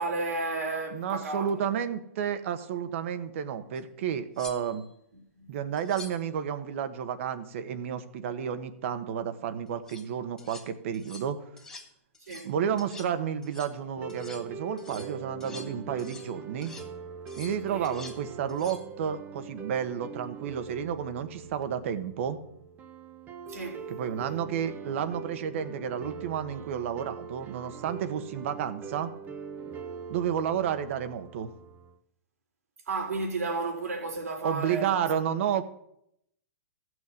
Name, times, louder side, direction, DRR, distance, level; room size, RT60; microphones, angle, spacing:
voice 1, 0.0-1.5 5.3-5.5 12.2-12.5 17.7-17.9 23.5-23.8 32.9-35.0, right 3 dB, 90° right, 3.7 m, -32 dB
voice 2, 0.9-4.8 5.5-11.4 12.4-16.7 17.4-22.4 23.9-29.1 30.1-31.5 34.4-35.6, right 8 dB, 55° right, 1.4 m, -31 dB
sound 1, 3.8-3.9 4.3-4.9 5.8-6.3 9.7-10.1 10.4-10.7 10.9-11.3 11.6-11.9 12.1-12.5 12.8-13.2 13.4-13.8 14.1-14.5 14.8-16.4 16.6-16.9 17.3-18.2 18.5-18.9 21.4-21.6, left 3 dB, 10° left, 1.6 m, -47 dB
sound 2, 14.0-32.0, right 6 dB, 20° right, 1.1 m, -43 dB
14.5 x 6.4 x 7.8 m
hypercardioid pair, 140°, 8 cm